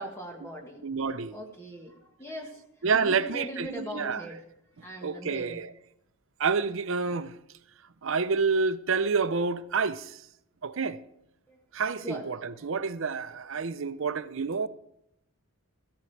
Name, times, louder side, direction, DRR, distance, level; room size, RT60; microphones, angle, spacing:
voice 1, 0.0-0.8 1.3-2.6 2.9-4.4 4.8-5.6 11.5-11.6 12.0-12.3 12.6-12.7, equal, 10° left, 1.4 m, -40 dB
voice 2, 0.8-1.4 2.8-4.3 5.0-5.7 6.4-7.3 8.0-10.2 10.6-11.0 11.7-14.7, right 5 dB, 60° right, 0.6 m, -28 dB
15.5 x 13.5 x 3.3 m
head